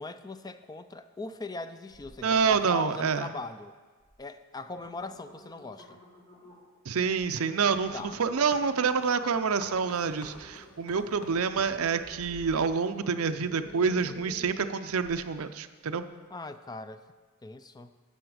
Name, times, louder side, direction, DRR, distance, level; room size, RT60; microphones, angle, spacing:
voice 1, 0.0-3.7 4.2-6.0 7.9-8.2 16.3-17.0 17.4-17.9, left 3 dB, 20° left, 11 dB, 0.4 m, -40 dB
sound 1, 1.9-2.6 2.9-3.4 4.0-4.1 4.5-6.8 7.3-7.4 7.8-15.3 15.8-15.9, equal, 55° left, 4.1 m, -52 dB
voice 2, 2.2-3.3 6.9-16.0, right 5 dB, 85° right, 10 dB, 0.6 m, -27 dB
sound 2, 7.2-12.6, left 1 dB, 80° left, 1.6 m, -51 dB
12.0 x 7.9 x 4.9 m, 1.4 s
head